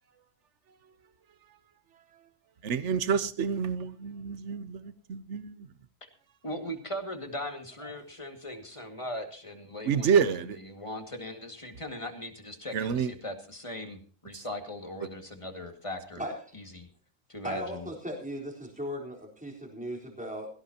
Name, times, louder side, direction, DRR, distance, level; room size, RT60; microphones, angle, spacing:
voice 1, 2.6-5.7 9.8-10.6 12.7-13.1 14.3-14.4, right 6 dB, 65° right, 1.2 m, -28 dB
voice 2, 6.4-10.1 10.7-16.2 16.5-16.9 17.3-17.9, left 1 dB, 25° left, 2.1 m, -39 dB
voice 3, 17.4-20.5, equal, 5° right, 3.9 m, -37 dB
17.5 x 17.0 x 2.9 m
omnidirectional pair, 1.3 m